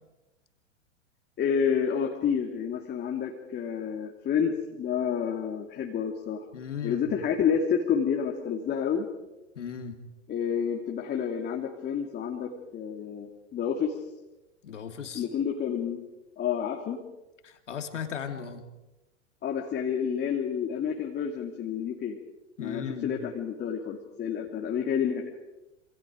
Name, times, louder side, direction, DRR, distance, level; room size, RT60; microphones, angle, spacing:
voice 1, 1.4-6.4 6.8-9.1 10.3-14.0 15.1-16.0 16.4-17.0 19.4-22.2 22.6-25.3, left 7 dB, 25° left, 0 dB, 2.7 m, -29 dB
voice 2, 6.5-7.1 9.6-10.0 14.6-15.3 17.4-18.6 22.6-23.1, left 7 dB, 75° left, 6 dB, 3.0 m, -36 dB
27.5 x 26.0 x 5.1 m, 1.0 s
figure-of-eight pair, 95°, 37 cm